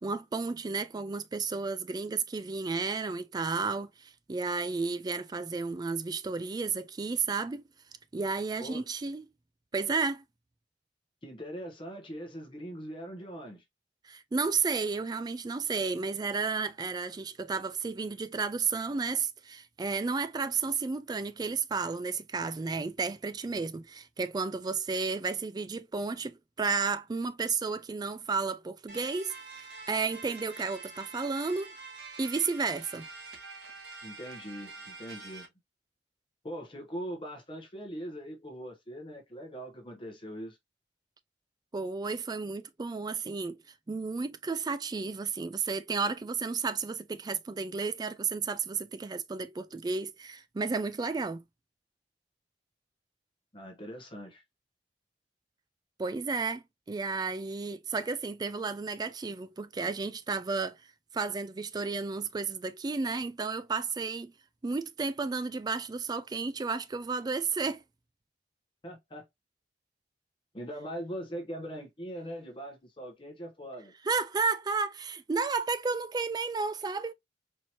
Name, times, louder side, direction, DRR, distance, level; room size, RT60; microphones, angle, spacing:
voice 1, 0.0-7.6 8.1-9.2 9.7-10.2 14.0-31.7 32.2-33.1 41.7-43.6 43.9-51.4 56.0-60.8 61.1-64.3 64.6-67.8 74.1-77.1, right 4 dB, 20° right, 0.3 m, -32 dB
voice 2, 11.2-13.6 34.0-35.5 36.4-40.6 53.5-54.4 68.8-69.3 70.5-73.9, equal, 30° left, 0.9 m, -41 dB
sound 1, 28.9-35.4, right 4 dB, 65° right, 1.5 m, -46 dB
4.5 x 2.8 x 2.8 m
head